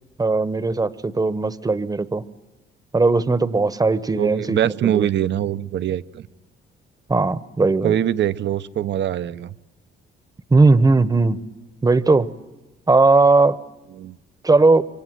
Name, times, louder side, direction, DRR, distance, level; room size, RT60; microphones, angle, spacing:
voice 1, 0.2-2.2 2.9-5.1 7.1-8.0 10.5-11.4 11.8-12.3 12.9-13.6 14.4-14.8, right 3 dB, 20° right, 14 dB, 1.0 m, -18 dB
voice 2, 4.1-6.2 7.8-9.5 14.0-14.2, right 11 dB, 65° right, 13 dB, 0.8 m, -23 dB
26.0 x 23.5 x 7.6 m, 1.1 s
cardioid pair, 90°, 20 cm